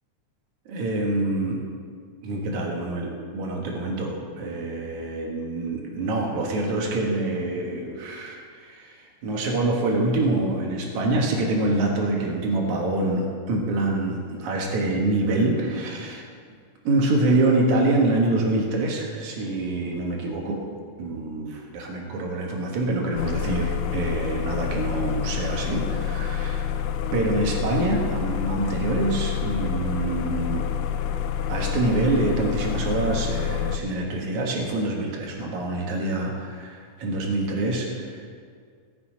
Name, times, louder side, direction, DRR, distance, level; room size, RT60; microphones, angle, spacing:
voice 1, 0.7-1.6 2.2-16.3 16.8-20.6 21.0-26.7 27.1-30.7 31.5-38.3, right 2 dB, 65° right, 0 dB, 2.9 m, -26 dB
sound 1, 23.2-33.8, left 9 dB, 80° left, 2.1 m, -28 dB
17.5 x 6.9 x 5.2 m, 2.1 s
omnidirectional pair, 3.7 m